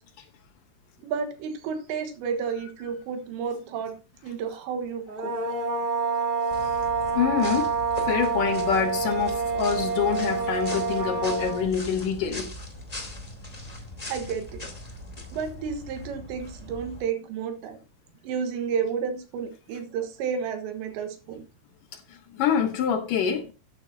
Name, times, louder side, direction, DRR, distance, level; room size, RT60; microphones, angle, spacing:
voice 1, 1.0-3.9 4.2-5.4 14.1-14.6 15.3-17.8 18.2-21.4, right 6 dB, 85° right, 3.5 m, -31 dB
sound 1, 5.1-11.7, right 4 dB, 40° right, 1.6 m, -27 dB
sound 2, 6.5-17.0, left 1 dB, 25° left, 0.7 m, -40 dB
voice 2, 7.1-7.7 8.0-12.5 13.0-13.1 21.9-23.5, left 8 dB, 70° left, 2.1 m, -26 dB
13.0 x 8.9 x 2.8 m
omnidirectional pair, 5.0 m